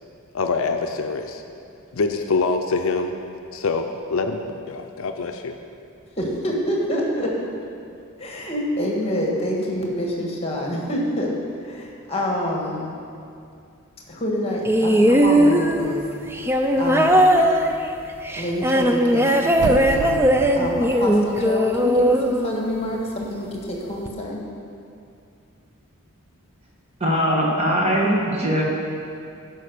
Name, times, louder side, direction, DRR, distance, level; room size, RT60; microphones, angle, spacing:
voice 1, 0.3-1.4 1.9-3.1 3.5-5.5, left 4 dB, 65° left, 6 dB, 0.5 m, -25 dB
voice 2, 6.2-7.3 8.2-11.3 11.6-12.9 14.1-16.0 16.8-17.4 18.4-20.2 20.5-24.4, equal, 25° left, -1 dB, 1.5 m, -27 dB
sound 1, 14.7-23.0 24.1-24.2, equal, 10° right, 0.4 m, -19 dB
sound 2, 19.5-22.5 22.8-22.9, right 5 dB, 85° right, 0.4 m, -33 dB
voice 3, 27.0-28.6, equal, 30° right, -3 dB, 1.5 m, -21 dB
11.0 x 5.4 x 6.6 m, 2.5 s
head